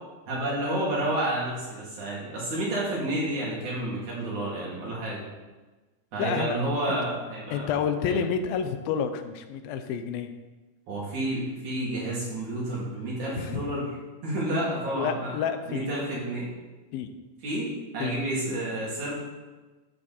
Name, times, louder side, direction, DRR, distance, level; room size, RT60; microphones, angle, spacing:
voice 1, 0.3-5.2 6.1-7.7 8.0-8.2 10.9-13.8 14.2-15.3 15.7-16.5 17.4-19.1, right 1 dB, 55° right, -6 dB, 4.5 m, -30 dB
voice 2, 6.2-6.6 6.9-7.0 7.5-10.3 13.4-13.6 15.0-15.9 16.9-17.1 18.0-18.2, left 7 dB, 90° left, 8 dB, 2.7 m, -29 dB
12.5 x 8.3 x 4.4 m, 1.2 s
omnidirectional pair, 4.1 m